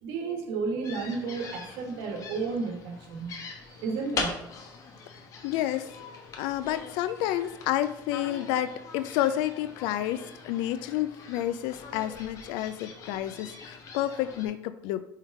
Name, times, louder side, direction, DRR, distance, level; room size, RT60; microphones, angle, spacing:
voice 1, 0.0-3.3 3.7-4.4, right 4 dB, 75° right, 3 dB, 1.3 m, -32 dB
sound 1, 0.8-14.5, left 4 dB, 40° left, 1.1 m, -42 dB
voice 2, 5.1-6.0 6.4-15.0, left 13 dB, 80° left, 12 dB, 0.3 m, -30 dB
5.4 x 3.7 x 4.7 m, 0.78 s
cardioid pair, 130°, 8 cm